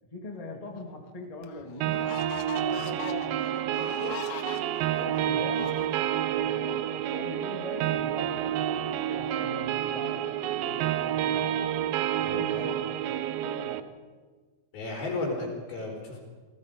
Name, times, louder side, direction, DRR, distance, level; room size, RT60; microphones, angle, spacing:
voice 1, 0.1-2.1 2.6-4.2 5.0-5.7 6.0-8.6 9.1-11.5 12.3-12.9 13.4-13.8, left 2 dB, 15° left, 2 dB, 1.7 m, -41 dB
sound 1, 0.8-0.9 1.4-6.4, left 9 dB, 65° left, 2.2 m, -42 dB
sound 2, 1.8-13.8, right 11 dB, 85° right, 2.7 m, -29 dB
voice 2, 12.2-12.6 14.7-16.2, left 2 dB, 85° left, 0 dB, 6.3 m, -34 dB
28.5 x 19.0 x 5.3 m, 1.4 s
omnidirectional pair, 4.2 m